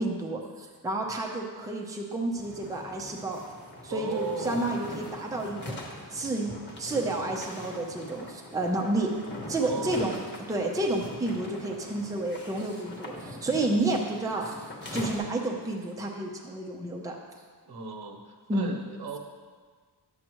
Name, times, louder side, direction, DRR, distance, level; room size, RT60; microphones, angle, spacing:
voice 1, 0.0-3.4 3.8-5.8 6.1-9.1 9.5-10.2 10.5-17.2 18.5-18.8, right 2 dB, 10° right, 0 dB, 0.7 m, -30 dB
sound 1, 2.4-15.2, left 1 dB, 25° left, 1.2 m, -42 dB
voice 2, 3.9-4.8 9.6-10.2 17.7-19.2, right 4 dB, 65° right, 3 dB, 1.0 m, -36 dB
10.5 x 7.6 x 3.0 m, 1.6 s
wide cardioid pair, 170°, 42 cm